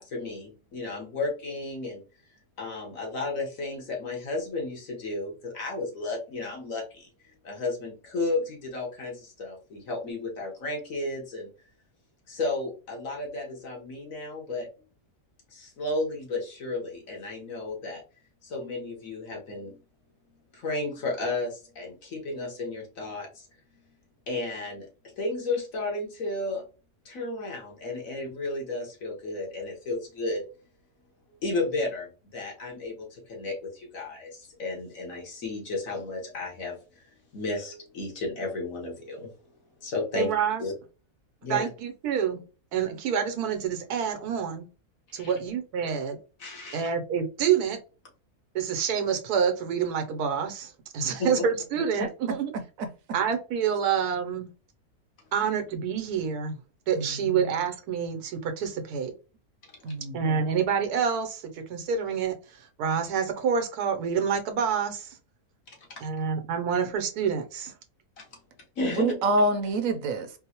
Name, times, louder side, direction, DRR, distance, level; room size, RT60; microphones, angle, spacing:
voice 1, 0.0-2.0 2.6-7.1 7.4-11.5 12.3-14.7 15.5-18.0 18.4-19.7 20.5-23.5 24.3-24.9 25.2-26.6 27.0-30.4 31.4-37.0 37.3-39.3 39.8-40.3 40.6-40.7 41.4-41.7 45.1-45.3 46.4-46.9 51.0-51.3 65.7-66.0 68.2-68.3 68.8-69.0, left 2 dB, 65° left, 1.5 m, -33 dB
voice 2, 40.1-40.6 41.5-42.4 42.7-44.6 45.1-46.2 46.7-47.8 48.5-52.5 53.1-54.5 55.3-56.6 56.9-59.1 60.1-62.3 62.8-65.2 66.0-67.7, right 7 dB, 90° right, 1.2 m, -27 dB
voice 3, 57.0-57.6 59.8-60.4 68.8-70.3, right 2 dB, 70° right, 0.9 m, -27 dB
4.5 x 2.0 x 2.8 m
omnidirectional pair, 1.6 m